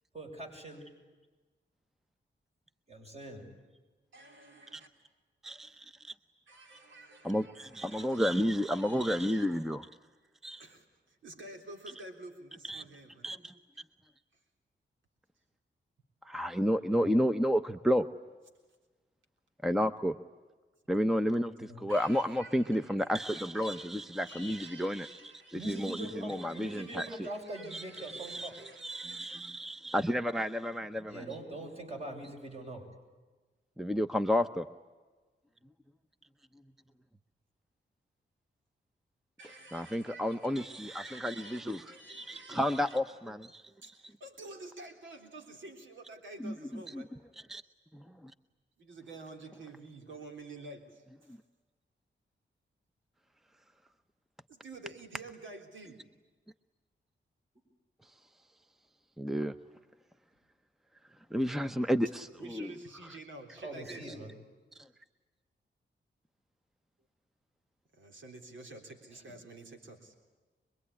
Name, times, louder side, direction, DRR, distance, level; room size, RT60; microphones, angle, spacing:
voice 1, 0.1-0.9 2.9-3.5 16.9-17.1 21.6-21.9 25.5-28.5 31.1-32.8 63.6-64.3, right 1 dB, 35° right, 2 dB, 7.8 m, -43 dB
voice 2, 4.1-4.9 6.5-9.5 10.6-13.3 14.3-14.4 21.9-29.5 39.4-43.0 43.8-47.1 48.8-51.4 54.5-56.0 62.4-64.2 67.9-70.1, right 2 dB, 80° right, 4 dB, 3.6 m, -50 dB
voice 3, 5.4-6.1 7.2-9.9 10.4-10.6 12.7-12.8 13.2-13.5 16.2-18.1 19.6-20.2 20.9-27.3 27.7-31.3 33.8-34.7 39.7-43.6 46.4-46.5 46.9-47.0 47.5-47.6 47.9-48.3 59.2-59.5 61.3-62.3 62.5-62.7, equal, ahead, 11 dB, 0.8 m, -31 dB
25.5 x 22.5 x 9.9 m, 1.3 s
cardioid pair, 85°, 19 cm